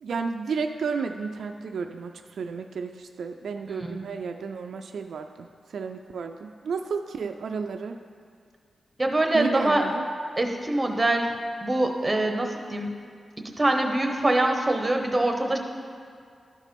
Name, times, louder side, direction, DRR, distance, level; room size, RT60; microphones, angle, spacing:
voice 1, 0.0-8.0 9.3-10.0, right 5 dB, 80° right, 5 dB, 0.3 m, -32 dB
voice 2, 9.0-9.8 10.4-11.3 11.6-12.9 13.6-15.6, right 1 dB, 20° right, 3 dB, 0.8 m, -24 dB
12.0 x 4.2 x 5.2 m, 2.2 s
wide cardioid pair, 105°, 0 cm